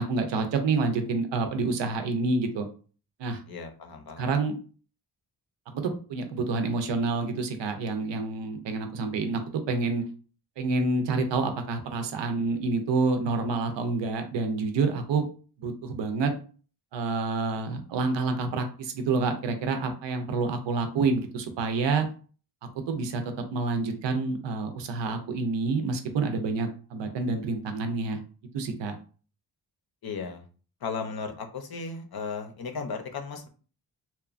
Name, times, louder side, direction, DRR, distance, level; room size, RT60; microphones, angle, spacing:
voice 1, 0.0-2.7 3.2-3.4 4.2-4.5 5.7-10.0 10.6-15.2 15.6-16.3 16.9-22.1 22.9-23.2 23.5-28.2 28.5-29.0, right 3 dB, 85° right, 6 dB, 0.6 m, -28 dB
voice 2, 3.5-4.3 30.0-30.4 30.8-33.5, left 5 dB, 60° left, 5 dB, 0.6 m, -35 dB
2.9 x 2.2 x 2.4 m, 0.39 s
wide cardioid pair, 85°, 42 cm